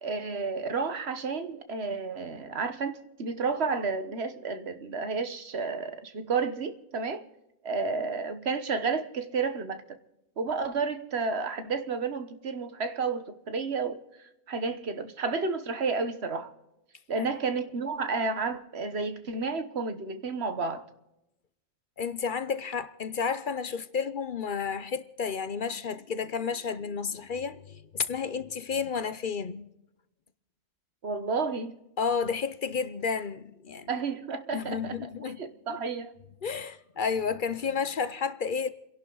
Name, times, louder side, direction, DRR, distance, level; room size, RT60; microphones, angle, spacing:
voice 1, 0.0-7.2 7.6-10.0 10.4-14.0 14.5-16.5 17.1-20.9 31.0-31.8 33.9-36.1, right 4 dB, 75° right, 1.5 m, -31 dB
voice 2, 22.0-29.7 32.0-33.9 34.5-35.4 36.4-38.7, left 6 dB, 55° left, 0.9 m, -31 dB
29.5 x 11.5 x 3.9 m
omnidirectional pair, 1.1 m